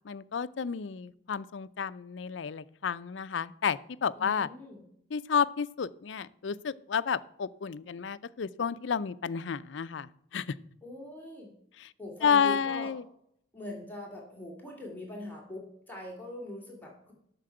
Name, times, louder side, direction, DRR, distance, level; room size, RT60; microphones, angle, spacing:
voice 1, 0.0-4.5 5.1-10.5 11.8-11.9 12.2-13.0, left 6 dB, 80° left, 16 dB, 0.5 m, -31 dB
voice 2, 4.2-4.8 10.8-11.5 12.0-12.9 13.5-17.1, left 1 dB, 10° left, -2 dB, 2.9 m, -42 dB
8.6 x 6.7 x 7.7 m, 0.72 s
head